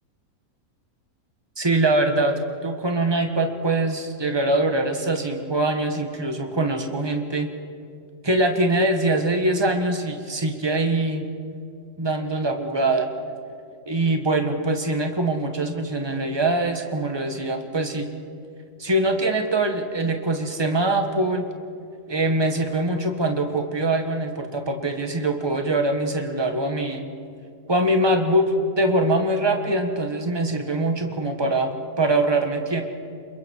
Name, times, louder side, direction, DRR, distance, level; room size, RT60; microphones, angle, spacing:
voice 1, 1.6-2.3 2.6-7.5 8.2-11.2 12.0-13.1 13.9-18.1 18.8-21.4 22.1-27.0 27.7-31.7 32.0-32.8, right 2 dB, 15° right, 5 dB, 1.6 m, -23 dB
27.5 x 22.5 x 4.7 m, 2.4 s
omnidirectional pair, 1.6 m